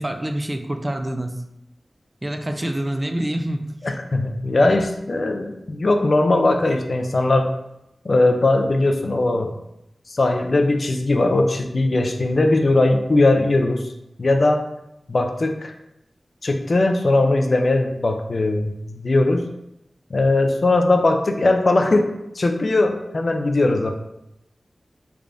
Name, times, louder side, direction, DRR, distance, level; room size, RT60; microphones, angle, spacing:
voice 1, 0.0-1.4 2.2-3.6, right 1 dB, 25° right, 5 dB, 0.3 m, -26 dB
voice 2, 3.8-7.5 8.0-9.6 10.1-13.9 14.2-14.7 15.1-15.7 16.4-19.4 20.1-22.1 22.3-23.9, left 2 dB, 55° left, 5 dB, 0.4 m, -19 dB
3.4 x 3.3 x 2.5 m, 0.84 s
wide cardioid pair, 85°, 0 cm